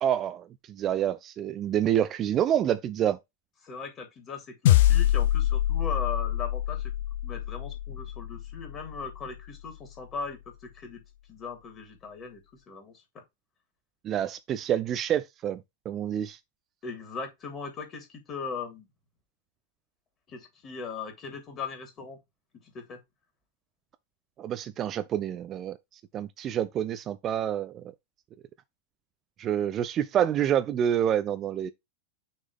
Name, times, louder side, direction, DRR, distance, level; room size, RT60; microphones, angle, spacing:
voice 1, 0.0-3.2 14.0-16.4 24.4-25.8 26.1-27.8 29.4-31.7, right 10 dB, 30° right, 0.5 m, -27 dB
voice 2, 3.6-6.8 7.2-10.4 10.7-11.0 11.3-12.4 12.7-13.2 16.8-18.9 20.3-22.2 22.7-23.0, left 5 dB, 30° left, 3.1 m, -38 dB
sound 1, 4.7-9.2, left 13 dB, 55° left, 0.5 m, -25 dB
6.3 x 3.7 x 5.1 m
figure-of-eight pair, 90°, 0 cm